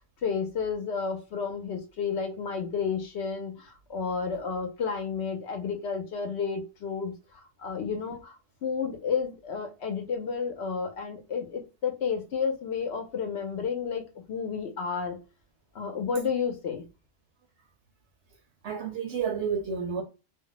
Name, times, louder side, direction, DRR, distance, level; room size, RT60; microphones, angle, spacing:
voice 1, 0.2-8.3 8.6-15.2 15.7-16.8, left 6 dB, 65° left, 0.8 m, -31 dB
voice 2, 18.6-20.0, right 6 dB, 65° right, 0.7 m, -30 dB
2.4 x 2.0 x 3.8 m
omnidirectional pair, 1.3 m